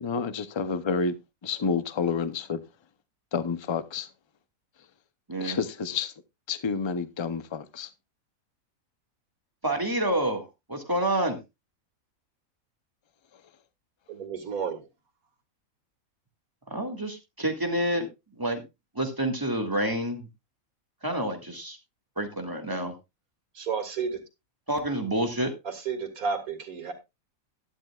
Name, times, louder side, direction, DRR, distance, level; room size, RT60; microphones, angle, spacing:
voice 1, 0.0-1.2 1.4-2.6 3.3-4.1 5.4-6.1 6.5-7.9, left 5 dB, 30° left, 0.5 m, -29 dB
voice 2, 9.6-10.4 10.7-11.4 16.7-18.1 18.4-18.6 19.0-20.3 21.0-21.8 22.2-22.9 24.7-25.5, right 1 dB, 15° right, 1.9 m, -28 dB
voice 3, 14.1-14.9 23.5-24.2 25.6-26.9, right 6 dB, 85° right, 2.2 m, -32 dB
12.0 x 12.0 x 2.4 m
omnidirectional pair, 1.5 m